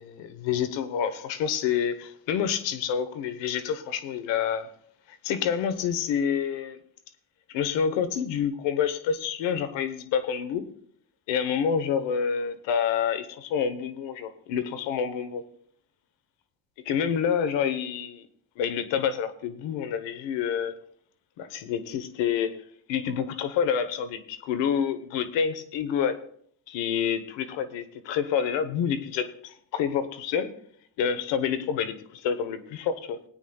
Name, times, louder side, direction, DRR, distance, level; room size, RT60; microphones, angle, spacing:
voice 1, 0.0-4.7 5.1-6.8 7.5-10.6 11.3-15.4 16.8-18.3 18.6-20.7 21.4-22.6 22.9-26.2 26.7-30.5 31.0-33.2, left 7 dB, 85° left, 1.2 m, -28 dB
21.0 x 9.4 x 2.3 m
cardioid pair, 105°, 43 cm